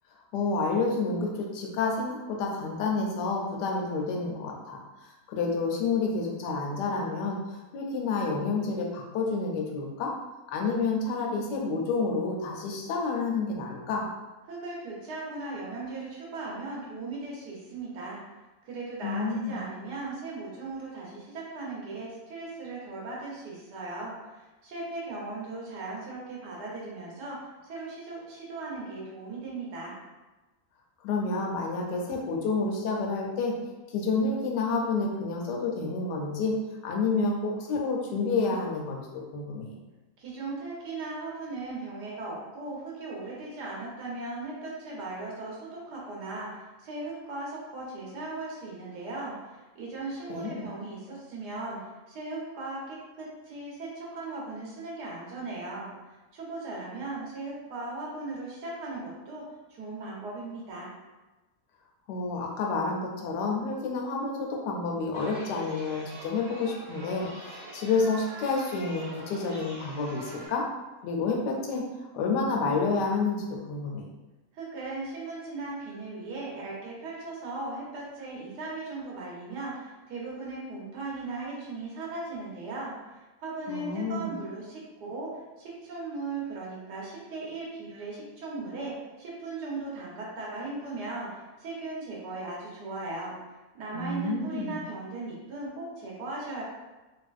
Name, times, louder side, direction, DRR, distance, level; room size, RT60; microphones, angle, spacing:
voice 1, 0.3-10.1 10.5-14.1 19.0-19.6 31.0-33.5 33.9-36.6 36.8-39.8 50.3-50.7 62.1-70.6 71.0-71.8 72.1-74.1 83.7-84.3 93.9-94.8, left 4 dB, 90° left, 0 dB, 1.2 m, -29 dB
voice 2, 14.5-18.2 18.6-30.0 40.2-51.8 52.1-59.4 59.7-60.9 74.5-84.8 85.1-93.3 93.7-96.6, right 3 dB, 80° right, -4 dB, 1.5 m, -38 dB
Chatter, 65.1-70.5, right 1 dB, 60° right, 0.9 m, -44 dB
3.5 x 2.6 x 2.4 m, 1.1 s
omnidirectional pair, 1.8 m